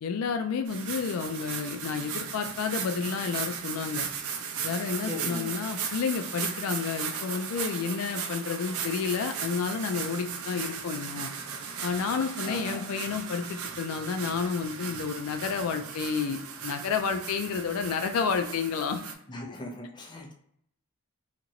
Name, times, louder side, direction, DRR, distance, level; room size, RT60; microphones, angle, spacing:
voice 1, 0.0-4.1 4.6-11.3 11.8-16.4 16.6-19.0, left 5 dB, 75° left, 7 dB, 0.4 m, -30 dB
sound 1, 0.7-19.1, right 7 dB, 75° right, 0.5 m, -37 dB
voice 2, 5.1-5.5 12.4-12.9 19.3-20.3, left 1 dB, 20° left, 1 dB, 0.5 m, -38 dB
2.9 x 2.8 x 2.6 m, 0.71 s
head